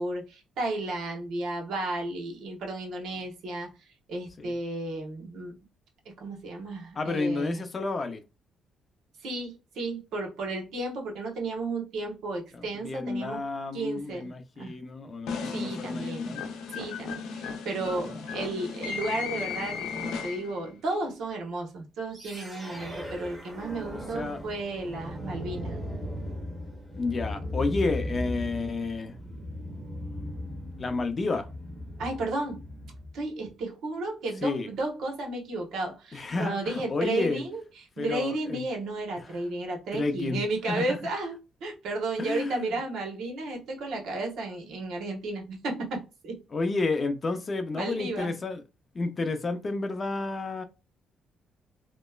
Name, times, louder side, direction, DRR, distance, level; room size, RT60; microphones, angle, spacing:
voice 1, 0.0-5.5 6.2-7.6 9.2-13.4 13.7-14.7 15.5-16.4 16.7-25.8 32.0-32.6 33.1-37.6 38.0-46.4 47.7-48.3, right 2 dB, 80° right, 1.0 m, -33 dB
voice 2, 7.0-8.2 12.5-16.4 18.0-18.3 24.1-24.4 26.9-29.2 30.8-31.5 34.4-34.7 36.1-37.4 38.0-38.6 39.2-39.4 39.9-40.4 40.7-41.0 42.2-42.7 46.5-48.6 48.9-50.6, left 3 dB, 35° left, 0.5 m, -31 dB
sound 1, 15.3-20.7, left 5 dB, 85° left, 0.6 m, -35 dB
sound 2, 22.1-33.2, left 1 dB, 15° right, 1.2 m, -37 dB
2.9 x 2.1 x 2.3 m
cardioid pair, 90°, 0 cm